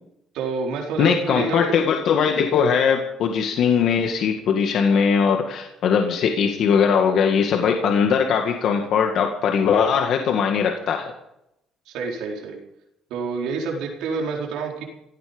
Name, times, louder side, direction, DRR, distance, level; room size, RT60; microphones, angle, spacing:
voice 1, 0.3-1.7 11.9-12.6 13.1-14.8, right 4 dB, 85° right, 0 dB, 4.2 m, -28 dB
voice 2, 1.0-11.1, left 6 dB, 60° left, 3 dB, 2.0 m, -20 dB
17.0 x 15.5 x 5.3 m, 0.82 s
cardioid pair, 140°, 0 cm